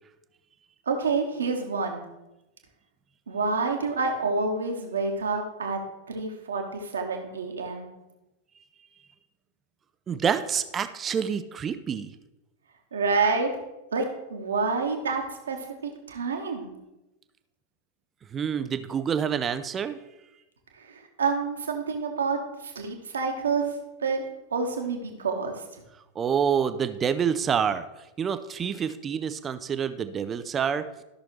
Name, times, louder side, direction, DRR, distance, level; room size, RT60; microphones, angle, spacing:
voice 1, 0.9-2.0 3.3-5.8 6.1-7.9 12.9-13.5 13.9-15.6 15.8-16.7 20.8-23.8 24.0-24.2 24.5-25.6, right 4 dB, 70° right, 3 dB, 1.5 m, -28 dB
voice 2, 10.1-12.1 18.3-20.0 26.2-27.9 28.2-30.8, right 7 dB, 25° right, 12 dB, 0.5 m, -27 dB
13.5 x 6.3 x 3.2 m, 0.97 s
figure-of-eight pair, 90°, 0 cm